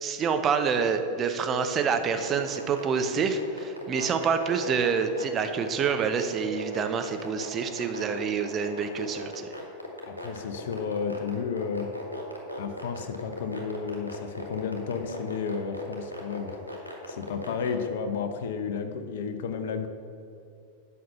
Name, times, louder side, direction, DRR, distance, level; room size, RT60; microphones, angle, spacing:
voice 1, 0.0-9.5, right 6 dB, 25° right, 7 dB, 0.7 m, -27 dB
sound 1, 2.0-17.7, left 1 dB, 85° left, 1.5 m, -37 dB
voice 2, 10.0-11.9 12.6-16.6 17.1-19.9, left 6 dB, 55° left, 8 dB, 0.8 m, -32 dB
7.7 x 5.7 x 6.9 m, 2.5 s
figure-of-eight pair, 90°, 0 cm